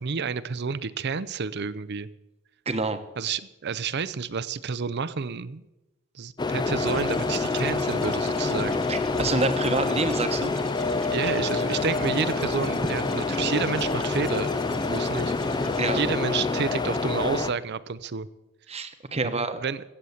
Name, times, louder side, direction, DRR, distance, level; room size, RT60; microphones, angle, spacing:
voice 1, 0.0-2.1 3.2-5.6 6.1-8.8 11.1-14.5 14.8-15.6 15.9-18.3 19.2-19.8, right 5 dB, 50° right, 17 dB, 0.6 m, -30 dB
voice 2, 2.7-3.0 8.9-10.6 15.5-16.1 18.7-19.6, right 3 dB, 30° right, 9 dB, 1.0 m, -28 dB
sound 1, 6.4-17.5, left 3 dB, 20° left, 0.5 m, -27 dB
sound 2, 6.8-16.1, equal, ahead, 1.6 m, -44 dB
16.0 x 8.0 x 7.1 m, 0.97 s
head